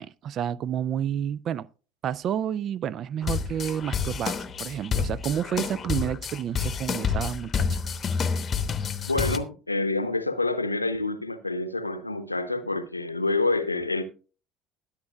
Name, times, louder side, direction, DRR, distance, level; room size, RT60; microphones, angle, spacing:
voice 1, 0.0-1.7 2.0-7.7, right 9 dB, 45° right, 0.4 m, -30 dB
sound 1, 3.2-9.4, left 6 dB, 30° left, 0.9 m, -29 dB
voice 2, 9.1-14.0, left 3 dB, 90° left, 0.7 m, -27 dB
21.0 x 7.2 x 2.3 m
figure-of-eight pair, 60°, 0 cm